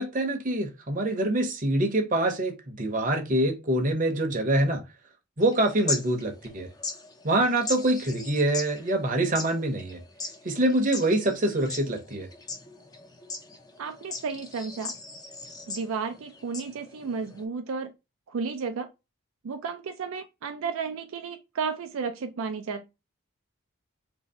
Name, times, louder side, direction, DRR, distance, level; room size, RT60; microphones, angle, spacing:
voice 1, 0.0-4.8 5.4-6.7 7.2-10.0 10.4-12.3, right 1 dB, 35° right, 0.7 m, -25 dB
sound 1, 5.4-17.4, left 3 dB, 15° left, 0.5 m, -39 dB
voice 2, 13.8-14.9 15.7-17.9 18.3-18.9 19.4-22.9, right 5 dB, 70° right, 0.4 m, -33 dB
2.9 x 2.7 x 4.1 m
head